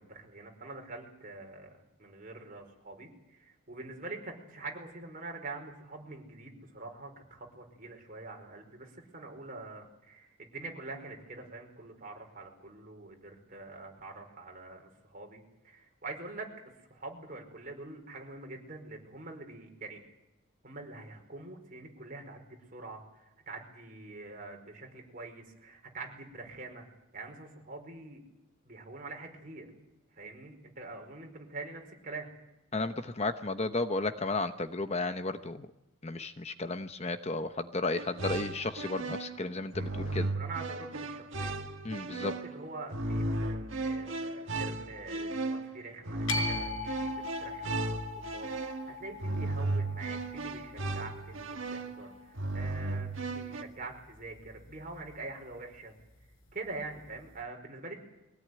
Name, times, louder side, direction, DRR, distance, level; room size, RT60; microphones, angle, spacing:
voice 1, 0.0-16.5 16.9-20.0 20.6-26.8 27.1-28.2 28.6-29.7 30.1-32.3 39.8-41.5 42.0-55.9 56.5-58.0, right 3 dB, 40° right, 2 dB, 5.0 m, -45 dB
voice 2, 32.7-35.7 36.0-40.3 41.8-42.3, left 3 dB, 30° left, 9 dB, 0.8 m, -33 dB
sound 1, 37.9-53.6, right 2 dB, 65° right, 1.9 m, -35 dB
sound 2, 46.3-52.5, left 3 dB, 80° left, 4.8 m, -40 dB
23.5 x 17.0 x 9.5 m, 0.93 s
head